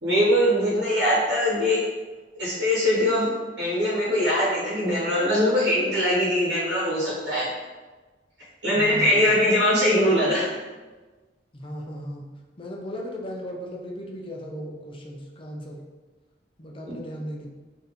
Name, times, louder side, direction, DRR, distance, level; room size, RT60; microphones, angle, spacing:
voice 1, 0.0-1.8 2.3-3.3 3.6-7.5 8.6-10.6 16.8-16.9, left 1 dB, 90° right, -7 dB, 1.2 m, -22 dB
voice 2, 8.7-9.3 11.5-12.3 12.6-15.8 16.6-17.5, equal, 30° left, 0 dB, 0.6 m, -36 dB
4.1 x 2.7 x 3.5 m, 1.3 s
head